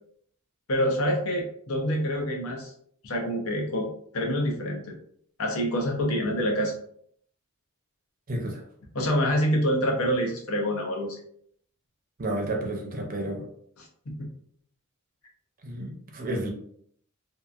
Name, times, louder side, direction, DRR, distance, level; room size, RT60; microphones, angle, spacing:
voice 1, 0.7-2.7 3.0-3.9 4.1-4.9 5.4-6.7 8.9-11.2 13.8-14.3, equal, 75° left, 1 dB, 0.7 m, -26 dB
voice 2, 8.3-8.6 12.2-13.4 15.6-16.5, right 1 dB, 40° right, 1 dB, 0.6 m, -31 dB
2.8 x 2.4 x 2.4 m, 0.65 s
head